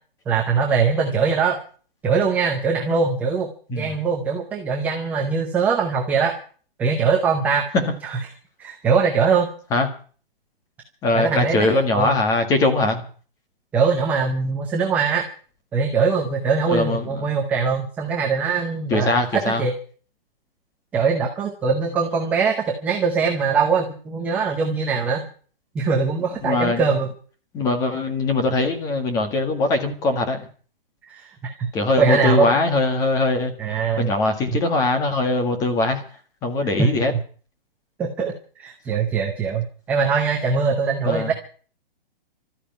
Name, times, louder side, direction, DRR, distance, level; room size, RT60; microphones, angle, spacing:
voice 1, 0.3-1.6 2.0-6.3 6.8-7.6 8.0-8.2 8.6-9.5 11.1-12.1 13.7-15.2 15.7-19.7 20.9-25.2 25.7-27.1 31.1-31.7 32.0-32.5 33.6-34.1 34.5-34.6 36.8-37.0 38.0-38.3 38.6-41.3, right 5 dB, 5° right, 1 dB, 0.7 m, -22 dB
voice 2, 11.0-13.0 16.7-17.2 18.9-19.6 26.4-26.8 27.5-30.4 31.7-33.5 34.0-36.0 36.4-37.1 41.1-41.3, left 2 dB, 10° left, 5 dB, 1.8 m, -21 dB
13.5 x 10.0 x 9.4 m, 0.42 s
hypercardioid pair, 170°, 29 cm